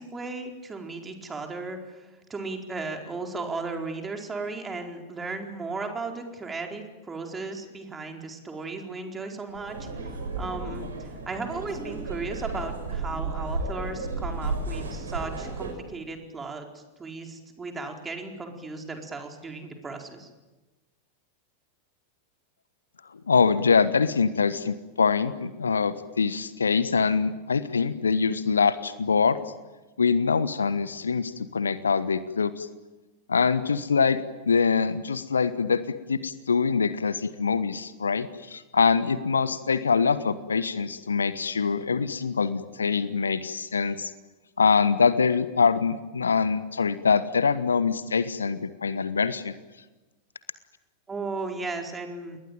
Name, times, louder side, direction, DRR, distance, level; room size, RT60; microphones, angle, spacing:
voice 1, 0.0-9.9 10.4-20.3 51.1-52.4, right 3 dB, 15° right, 3 dB, 4.6 m, -35 dB
sound 1, 9.5-15.7, right 3 dB, 70° right, 5.8 m, -33 dB
voice 2, 23.3-29.4 30.0-32.7 33.3-34.2 34.5-35.8 36.1-44.1 44.6-49.5, left 5 dB, 75° left, 14 dB, 1.3 m, -24 dB
29.5 x 21.5 x 9.2 m, 1.2 s
figure-of-eight pair, 90°, 0 cm